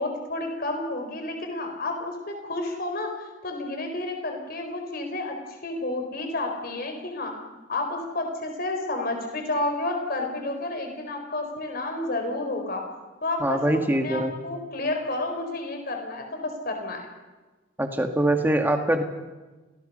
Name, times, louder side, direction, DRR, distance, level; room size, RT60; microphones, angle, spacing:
voice 1, 0.0-7.3 7.7-12.8 13.2-13.6 14.0-17.1, left 2 dB, 45° left, 4 dB, 4.1 m, -30 dB
voice 2, 13.4-14.4 17.8-19.0, right 1 dB, 10° right, 5 dB, 1.8 m, -23 dB
27.0 x 19.0 x 5.5 m, 1.2 s
head